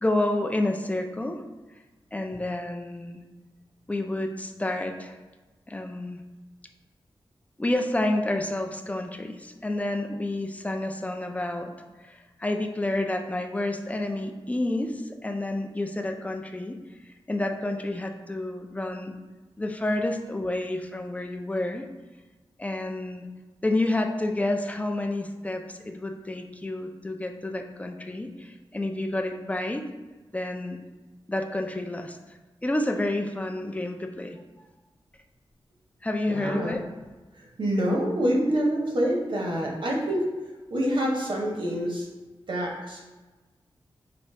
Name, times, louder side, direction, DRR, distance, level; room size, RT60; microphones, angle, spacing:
voice 1, 0.0-1.4 2.1-3.2 3.9-5.2 5.7-6.2 7.6-11.7 12.0-16.8 17.0-19.1 19.6-21.9 22.6-23.3 23.6-29.8 30.3-30.8 31.3-32.2 32.6-34.7 36.0-36.8, left 1 dB, 15° left, 4 dB, 0.3 m, -29 dB
voice 2, 36.3-36.8 37.4-40.2 40.7-42.1 42.5-43.0, equal, 65° right, -2 dB, 0.9 m, -26 dB
5.0 x 2.6 x 3.2 m, 1.2 s
wide cardioid pair, 130°, 9 cm